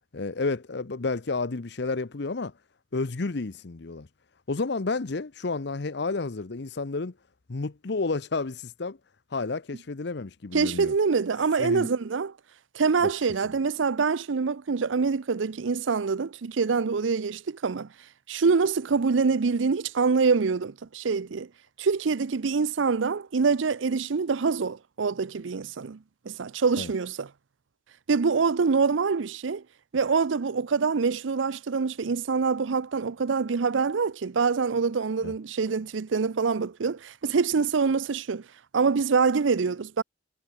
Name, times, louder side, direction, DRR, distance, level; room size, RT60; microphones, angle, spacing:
voice 1, 0.1-2.5 2.9-4.1 4.5-7.1 7.5-9.0 9.3-10.9 11.6-11.9 13.0-13.1 26.8-26.9 35.2-35.3, left 3 dB, 60° left, 0.8 m, -31 dB
voice 2, 10.5-12.3 12.7-17.9 18.3-21.5 21.8-26.0 26.3-27.3 28.1-29.6 29.9-38.4 38.7-40.0, right 5 dB, 90° right, 0.6 m, -25 dB
head